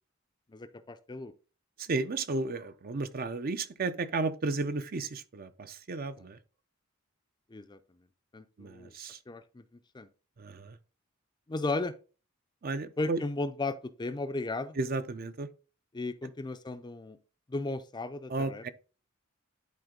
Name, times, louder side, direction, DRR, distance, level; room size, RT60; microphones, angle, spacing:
voice 1, 0.5-1.3 7.5-7.8 8.3-8.9 9.3-9.7 9.9-10.1 11.5-11.9 13.0-14.8 15.9-17.2 17.5-18.6, left 2 dB, 20° left, 0.5 m, -35 dB
voice 2, 1.8-6.4 8.6-9.2 10.4-10.8 12.6-13.2 14.8-15.5 18.3-18.7, right 3 dB, 45° right, 0.6 m, -33 dB
10.5 x 4.3 x 3.8 m
head